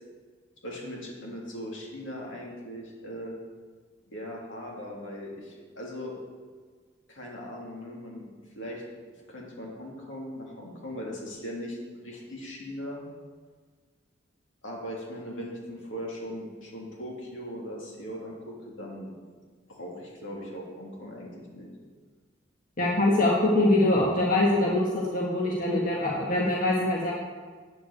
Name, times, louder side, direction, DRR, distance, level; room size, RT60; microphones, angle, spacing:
voice 1, 0.6-3.4 4.1-6.1 7.1-8.3 8.5-8.8 9.3-13.0 14.6-19.1 19.7-21.7, equal, 75° left, -3 dB, 3.2 m, -39 dB
voice 2, 22.8-27.1, left 1 dB, 45° left, -4 dB, 1.7 m, -23 dB
9.0 x 7.7 x 8.3 m, 1.5 s
head